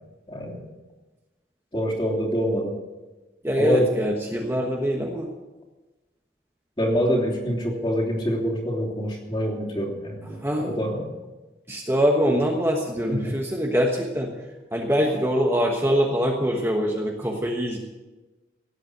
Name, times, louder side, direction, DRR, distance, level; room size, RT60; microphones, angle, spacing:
voice 1, 0.3-0.6 1.7-2.8 3.6-3.9 6.8-11.1 13.1-13.3, equal, 30° left, -2 dB, 3.1 m, -25 dB
voice 2, 3.4-5.3 10.4-10.7 11.7-14.3 14.7-17.8, equal, 15° right, 1 dB, 1.2 m, -23 dB
17.0 x 8.5 x 7.9 m, 1.2 s
head